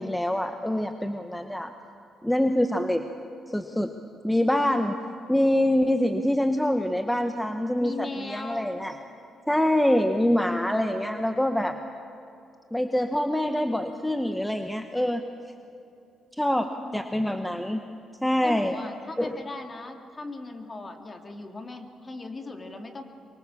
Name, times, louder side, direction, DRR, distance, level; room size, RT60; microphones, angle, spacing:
voice 1, 0.0-1.7 2.2-3.0 3.5-3.9 4.2-5.0 5.3-8.9 9.5-11.8 12.7-15.2 16.4-17.9 18.2-18.8 19.2-19.3, left 1 dB, 5° left, 7 dB, 1.1 m, -25 dB
voice 2, 7.8-8.7 16.6-17.3 18.4-23.0, left 3 dB, 30° left, 5 dB, 2.5 m, -38 dB
25.0 x 23.0 x 7.2 m, 2.7 s
cardioid pair, 90°, 0 cm